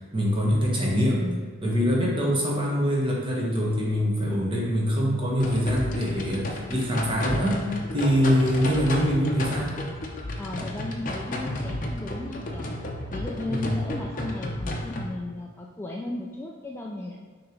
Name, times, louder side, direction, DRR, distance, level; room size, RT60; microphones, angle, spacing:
voice 1, 0.1-1.2 1.6-7.6 7.9-9.8 13.5-13.8, equal, 25° right, -4 dB, 1.2 m, -24 dB
voice 2, 0.9-1.4 7.1-7.6 10.4-12.7 13.1-17.2, left 1 dB, 10° left, -2 dB, 0.3 m, -35 dB
sound 1, 5.4-15.1, left 1 dB, 40° left, 0.6 m, -33 dB
6.4 x 3.0 x 5.0 m, 1.4 s
head